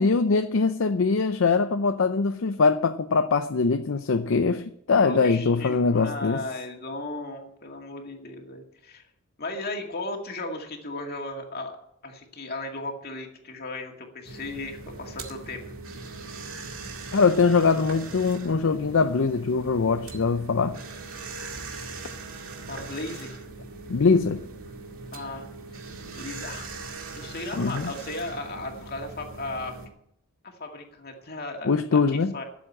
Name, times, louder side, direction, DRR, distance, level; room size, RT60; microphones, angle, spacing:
voice 1, 0.0-6.4 17.1-20.8 23.9-24.4 27.6-27.9 31.6-32.4, left 4 dB, 65° left, 0.5 m, -22 dB
voice 2, 5.0-9.1 9.4-11.7 12.0-15.6 22.7-23.4 25.1-25.5 26.2-26.7 27.2-29.8 30.4-32.4, left 2 dB, 50° left, 2.1 m, -36 dB
sound 1, 14.2-29.9, right 3 dB, 75° right, 2.1 m, -40 dB
12.5 x 7.4 x 8.6 m
head